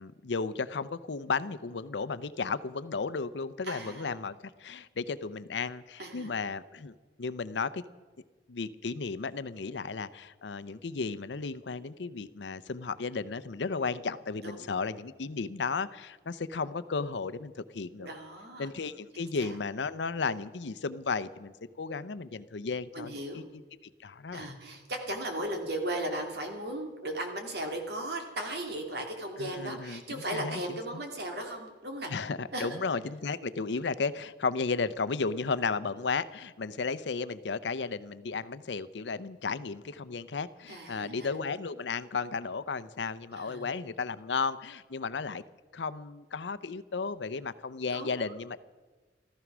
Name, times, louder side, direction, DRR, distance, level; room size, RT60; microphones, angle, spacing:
voice 1, 0.0-7.8 8.5-18.1 18.6-23.6 24.0-24.5 29.4-30.8 32.1-45.4 45.7-48.6, left 4 dB, 75° left, 14 dB, 0.6 m, -34 dB
voice 2, 3.6-4.1 6.0-6.3 14.4-14.7 18.0-18.7 19.1-19.5 22.9-23.5 24.3-32.1 32.5-32.8 40.7-41.4 43.3-43.7 47.9-48.3, right 1 dB, 60° right, 3 dB, 2.4 m, -37 dB
14.5 x 14.0 x 6.1 m, 1.3 s
head